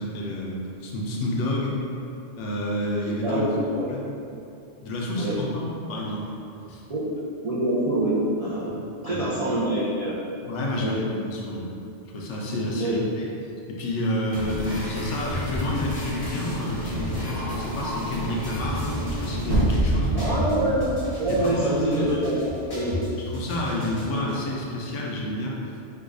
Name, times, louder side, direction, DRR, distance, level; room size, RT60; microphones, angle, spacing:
voice 1, 0.0-1.8 2.4-3.4 3.9-4.0 4.8-6.3 6.7-6.8 8.7-8.8 9.1-9.3 10.5-11.7 12.1-13.3 13.7-18.9 19.2-20.4 21.3-21.7 23.3-25.6, left 1 dB, 75° left, -3 dB, 0.9 m, -29 dB
voice 2, 7.4-8.7 9.0-10.2 10.8-11.0 12.7-13.1 20.2-23.0 24.1-24.2, right 1 dB, 60° right, -9 dB, 0.4 m, -25 dB
sound 1, 14.3-24.3, equal, 25° left, 0.7 m, -32 dB
sound 2, 19.4-22.3 22.7-22.8, right 1 dB, 85° right, 1.1 m, -26 dB
4.6 x 2.2 x 2.5 m, 2.6 s
omnidirectional pair, 1.3 m